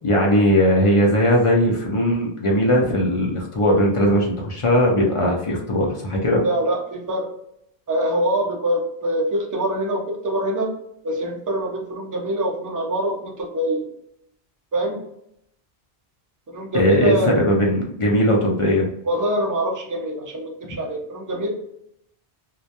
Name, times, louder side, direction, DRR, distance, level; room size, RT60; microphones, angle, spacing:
voice 1, 0.0-6.4 16.7-18.9, equal, 55° left, -2 dB, 0.3 m, -19 dB
voice 2, 6.4-7.3 7.9-10.7 11.0-13.8 14.7-15.0 16.5-17.3 19.0-21.5, right 1 dB, 30° right, -2 dB, 0.4 m, -24 dB
2.2 x 2.1 x 2.7 m, 0.77 s
omnidirectional pair, 1.1 m